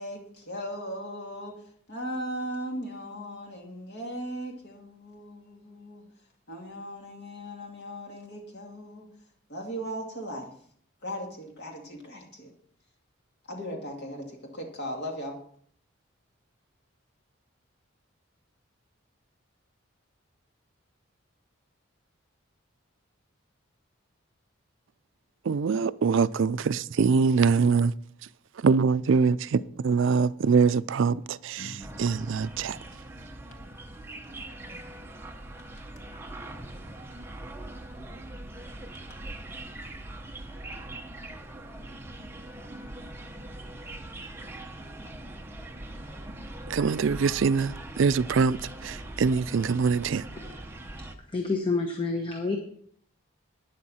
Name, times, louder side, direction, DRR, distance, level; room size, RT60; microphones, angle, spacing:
voice 1, 0.0-1.6 1.9-6.0 6.5-9.1 9.5-10.5 11.0-12.5 13.5-15.4, equal, 50° left, 2.5 m, -37 dB
voice 2, 25.4-27.9 28.6-32.8 46.7-50.3, right 5 dB, 60° right, 0.4 m, -24 dB
sound 1, 31.6-32.0 32.6-32.9 33.5-33.6 34.2-34.3 34.6-34.7 35.2-35.3 35.6-36.0 37.1-37.2 37.5-37.7 38.8-39.2, equal, 75° left, 1.9 m, -46 dB
sound 2, 31.8-51.1, right 1 dB, 10° right, 0.8 m, -42 dB
voice 3, 51.3-52.6, left 3 dB, 25° left, 1.0 m, -28 dB
12.0 x 9.5 x 4.2 m
head